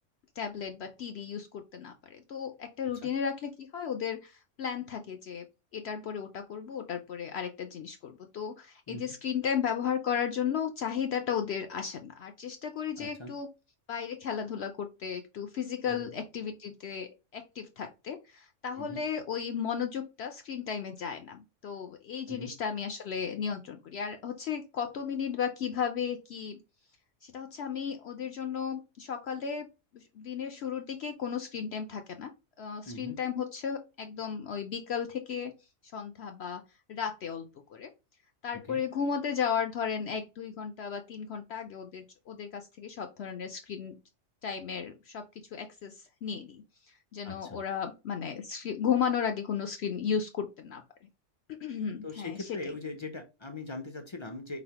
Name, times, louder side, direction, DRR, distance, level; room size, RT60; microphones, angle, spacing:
voice 1, 0.4-4.3 4.6-5.4 5.7-13.5 13.9-26.6 27.2-29.7 29.9-32.3 32.6-35.5 35.9-36.6 36.9-37.9 38.4-44.0 44.4-45.2 45.5-46.6 47.1-50.8 51.5-52.7, left 7 dB, 65° left, 6 dB, 0.8 m, -34 dB
voice 2, 13.0-13.3 15.8-16.1 18.8-19.0 22.3-22.5 32.9-33.2 38.5-38.8 47.2-47.6 52.0-54.6, left 2 dB, 35° left, 7 dB, 0.5 m, -41 dB
4.0 x 4.0 x 2.9 m, 0.27 s
omnidirectional pair, 1.3 m